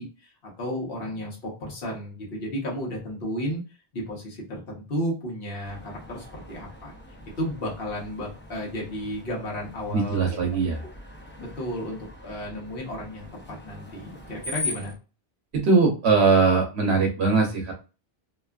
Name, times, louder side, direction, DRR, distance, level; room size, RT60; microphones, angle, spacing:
voice 1, 0.0-3.6 3.9-6.9 7.4-10.4 11.4-13.3 13.6-14.9, equal, 65° left, -3 dB, 1.2 m, -33 dB
Screech, 5.6-14.9, left 3 dB, 20° left, 0.4 m, -41 dB
voice 2, 9.9-10.8 15.5-17.7, right 4 dB, 85° right, 2 dB, 1.0 m, -21 dB
2.9 x 2.3 x 2.3 m, 0.32 s
omnidirectional pair, 1.1 m